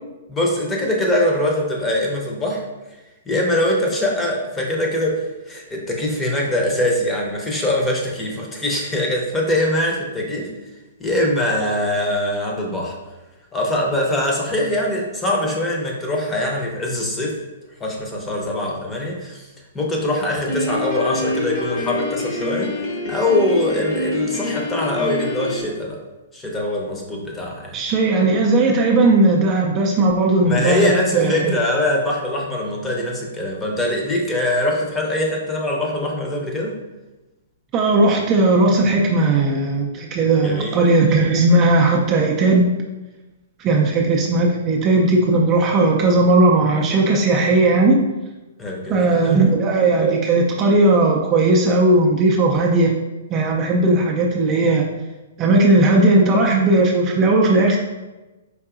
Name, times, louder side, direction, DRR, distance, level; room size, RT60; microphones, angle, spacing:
voice 1, 0.3-2.6 3.3-10.5 11.0-13.0 13.5-17.4 17.8-19.5 19.7-22.7 23.1-26.0 26.3-27.8 30.4-36.7 40.4-40.8 48.6-49.4, left 1 dB, 15° left, -1 dB, 0.7 m, -22 dB
Piano, 20.5-25.6, left 2 dB, 45° left, 0.9 m, -26 dB
voice 2, 27.7-31.5 37.7-42.6 43.6-48.0 48.9-53.0 53.3-54.9 55.4-57.8, right 2 dB, 30° right, 0 dB, 0.4 m, -17 dB
4.6 x 2.6 x 2.4 m, 1.1 s
figure-of-eight pair, 120°, 0 cm